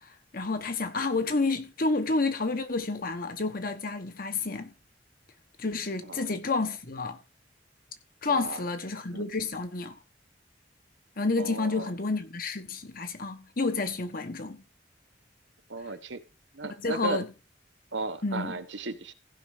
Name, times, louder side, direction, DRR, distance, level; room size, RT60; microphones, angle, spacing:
voice 1, 0.3-4.7 5.6-7.2 8.2-10.0 11.2-14.6 16.6-17.3 18.2-18.6, left 3 dB, 50° left, 1.3 m, -30 dB
voice 2, 8.3-8.6 9.1-9.2 11.4-11.9 15.7-16.2 16.5-17.2 17.9-19.1, right 3 dB, 85° right, 1.3 m, -35 dB
15.5 x 5.4 x 5.0 m
head